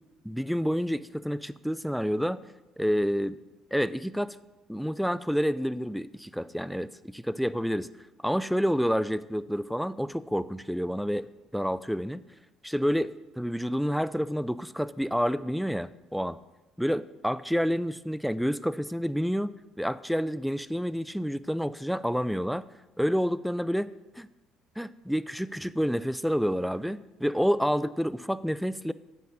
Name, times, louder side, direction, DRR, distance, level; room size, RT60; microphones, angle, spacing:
voice 1, 0.2-2.4 2.8-3.4 3.7-4.4 4.7-7.9 8.2-12.2 12.6-16.4 16.8-22.7 23.0-23.9 24.2-24.3 24.8-28.9, equal, ahead, 16 dB, 0.3 m, -29 dB
8.0 x 4.8 x 5.0 m, 1.0 s
hypercardioid pair, 60°, 0 cm